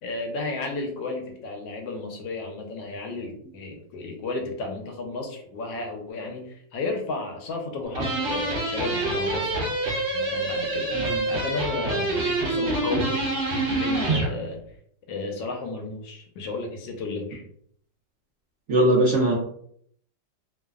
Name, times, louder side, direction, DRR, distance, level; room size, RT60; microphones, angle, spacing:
voice 1, 0.0-9.7 10.1-10.9 11.3-13.2 13.7-14.6 15.1-17.4, left 3 dB, 80° left, 2 dB, 1.3 m, -33 dB
sound 1, 7.9-14.3, right 2 dB, 55° right, 1.4 m, -26 dB
voice 2, 18.7-19.4, right 1 dB, 75° right, -5 dB, 0.7 m, -20 dB
3.2 x 2.0 x 2.3 m, 0.65 s
omnidirectional pair, 2.0 m